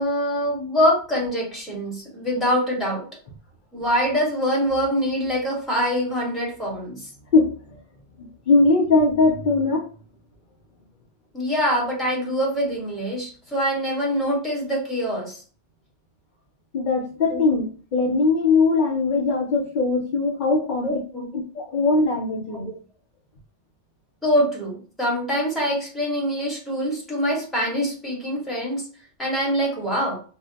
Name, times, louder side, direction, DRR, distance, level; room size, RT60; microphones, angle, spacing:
voice 1, 0.0-3.1 3.7-7.1 11.3-15.4 17.3-17.4 20.8-21.3 22.5-22.7 24.2-28.8 29.2-30.2, equal, ahead, -3 dB, 0.9 m, -24 dB
voice 2, 8.2-9.8 16.7-21.0 21.3-22.7, left 3 dB, 60° left, 0 dB, 0.5 m, -20 dB
2.2 x 2.1 x 3.8 m, 0.40 s
omnidirectional pair, 1.2 m